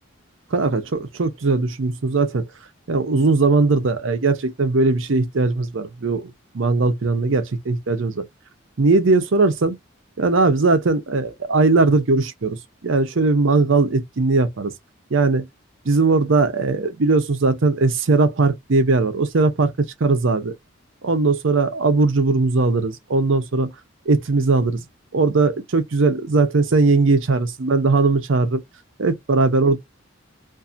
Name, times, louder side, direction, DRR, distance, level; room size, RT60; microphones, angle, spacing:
voice 1, 0.5-2.5 2.9-8.3 8.8-9.8 10.2-14.7 15.1-15.5 15.9-20.5 21.0-23.7 24.1-24.9 25.1-28.6 29.0-29.8, right 3 dB, 65° right, 0.6 m, -19 dB
2.6 x 2.4 x 2.6 m
head